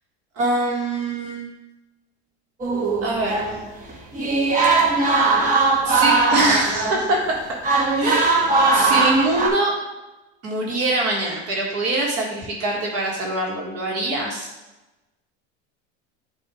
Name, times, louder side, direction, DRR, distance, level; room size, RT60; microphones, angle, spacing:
voice 1, 0.4-1.5 3.0-3.4 5.8-7.4 8.0-9.7 10.4-14.5, right 2 dB, 45° right, -2 dB, 1.6 m, -23 dB
sound 1, 2.6-7.2 7.6-9.5, right 3 dB, 25° right, 1.2 m, -20 dB
7.9 x 2.7 x 4.9 m, 1.1 s
supercardioid pair, 110°, 34 cm